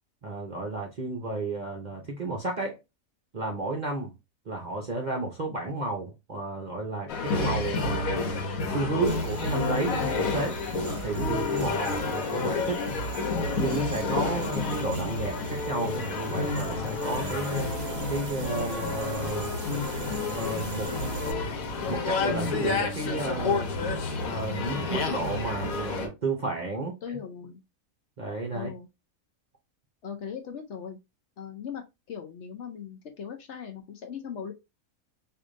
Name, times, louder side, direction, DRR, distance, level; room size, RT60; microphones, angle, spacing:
voice 1, 0.2-2.8 3.3-4.1 4.5-8.4 8.7-10.6 11.0-12.8 13.6-17.7 18.1-19.6 20.3-20.9 21.9-23.7 24.2-26.9 28.2-28.7, right 2 dB, 45° right, 0.6 m, -32 dB
sound 1, 7.1-26.1, left 3 dB, 80° left, 1.3 m, -30 dB
sound 2, 9.1-21.3, right 7 dB, 75° right, 1.0 m, -43 dB
voice 2, 26.7-27.6 28.5-28.9 30.0-31.0 31.4-34.5, left 7 dB, 60° left, 0.8 m, -39 dB
4.7 x 2.6 x 2.5 m
omnidirectional pair, 1.5 m